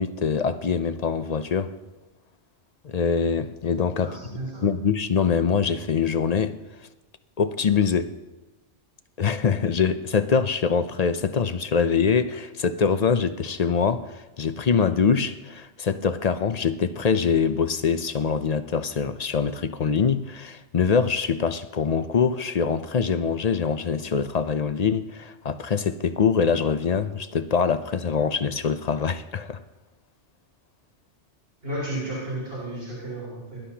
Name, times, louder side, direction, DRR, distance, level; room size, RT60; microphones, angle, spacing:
voice 1, 0.0-1.7 2.8-4.2 4.6-6.6 7.4-8.1 9.2-29.6, left 6 dB, 45° left, 0.5 m, -24 dB
voice 2, 4.0-4.6 31.6-33.6, right 1 dB, 55° right, 5.4 m, -33 dB
22.0 x 12.0 x 2.9 m
omnidirectional pair, 1.2 m